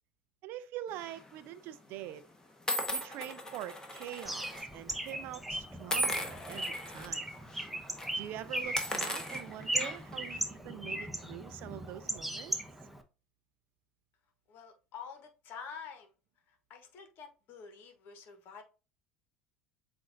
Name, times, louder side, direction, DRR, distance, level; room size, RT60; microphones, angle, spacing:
voice 1, 0.4-2.3 2.9-7.3 8.1-12.6, right 12 dB, 55° right, 0.5 m, -44 dB
sound 1, 1.0-1.3 2.0-2.1 2.7-4.6 4.9-5.1 5.9-7.1 7.5-7.7 7.9-8.1 8.6-10.2, equal, 15° left, 1.1 m, -37 dB
Bird, 4.2-13.0, right 1 dB, 5° right, 0.8 m, -38 dB
voice 2, 14.5-16.1 16.7-18.6, left 6 dB, 50° left, 1.3 m, -48 dB
7.4 x 2.6 x 2.6 m
hypercardioid pair, 70°, 4 cm